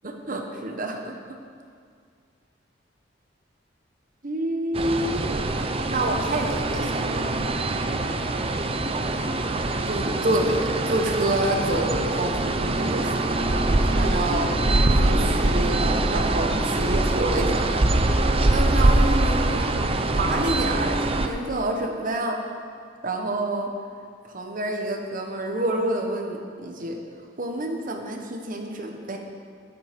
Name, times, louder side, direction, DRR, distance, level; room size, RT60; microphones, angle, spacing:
voice 1, 0.3-1.4 4.2-5.3 5.9-7.2 9.9-14.5 15.0-18.0 18.5-19.7 20.1-22.4 23.0-23.7 24.3-27.0 27.4-29.2, right 1 dB, 50° right, 2 dB, 1.2 m, -28 dB
sound 1, 4.7-21.3, right 2 dB, 30° right, 0.6 m, -23 dB
10.5 x 9.4 x 5.3 m, 2.1 s
head